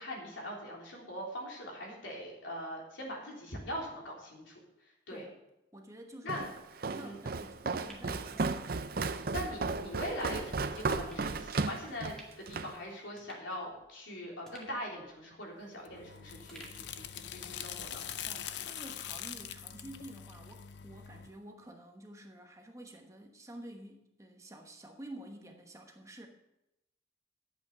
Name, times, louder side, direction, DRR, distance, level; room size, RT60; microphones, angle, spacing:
voice 1, 0.0-4.6 5.1-5.3 6.2-6.4 7.0-7.2 9.1-18.0, equal, 85° left, -2 dB, 3.6 m, -42 dB
voice 2, 5.1-5.4 5.7-6.5 6.8-8.6 18.3-26.3, right 1 dB, 15° right, 3 dB, 1.1 m, -50 dB
Walk footsteps, 6.3-12.8, right 4 dB, 50° right, 0.6 m, -35 dB
sound 1, 7.9-9.1 9.4-9.5 10.3-10.5 11.1-11.3 11.8-12.5 12.8-12.9 13.2-14.1 14.5-16.1 16.5-17.7 18.0-18.1, right 1 dB, 5° left, 2.0 m, -57 dB
sound 2, 15.9-21.3, left 9 dB, 65° left, 0.6 m, -43 dB
11.0 x 8.4 x 5.7 m, 0.89 s
head